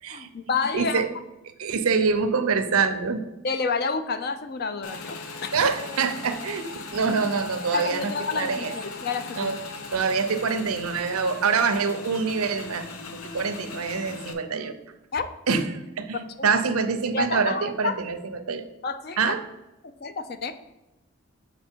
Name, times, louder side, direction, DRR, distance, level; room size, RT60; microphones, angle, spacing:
voice 1, 0.1-1.0 3.4-5.5 7.7-9.5 15.1-15.3 16.4-16.5 17.1-18.0 18.8-19.3 20.0-20.5, left 4 dB, 45° left, 10 dB, 0.4 m, -29 dB
voice 2, 0.7-1.1 1.6-3.2 5.5-8.7 9.4-9.6 9.9-12.9 13.2-14.7 15.5-18.7 19.2-19.4, right 5 dB, 85° right, 9 dB, 0.6 m, -25 dB
Motorcycle / Engine, 4.8-14.3, left 3 dB, 80° left, 0.7 m, -38 dB
6.8 x 4.1 x 4.4 m, 0.96 s
head